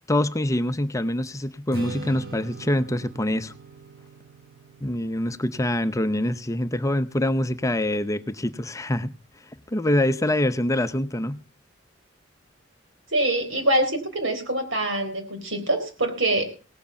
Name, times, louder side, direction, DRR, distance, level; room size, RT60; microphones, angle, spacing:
voice 1, 0.1-3.5 4.8-9.2 9.7-11.4, left 1 dB, 15° left, 12 dB, 0.6 m, -25 dB
Strum, 1.7-8.0, right 3 dB, 55° right, 1.8 m, -43 dB
voice 2, 13.1-16.4, right 1 dB, 85° right, 6 dB, 4.0 m, -24 dB
18.0 x 7.9 x 6.9 m, 0.37 s
head